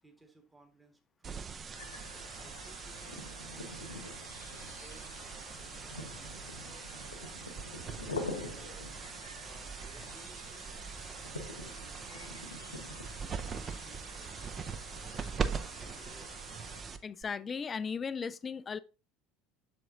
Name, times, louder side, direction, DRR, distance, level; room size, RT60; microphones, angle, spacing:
voice 1, 0.0-1.5 2.1-4.1 4.6-7.4 7.8-8.9 9.4-12.6 13.1-14.3 14.9-16.4, right 2 dB, 10° right, 1.6 m, -60 dB
sound 1, 1.2-17.2, right 6 dB, 30° right, 0.6 m, -42 dB
sound 2, 1.8-16.8, left 2 dB, 80° left, 1.0 m, -46 dB
sound 3, 6.6-7.9 8.2-9.6 10.0-11.3, left 4 dB, 85° right, 3.6 m, -62 dB
voice 2, 17.0-18.8, left 6 dB, 25° left, 0.3 m, -36 dB
7.5 x 6.8 x 2.6 m
figure-of-eight pair, 70°, 0 cm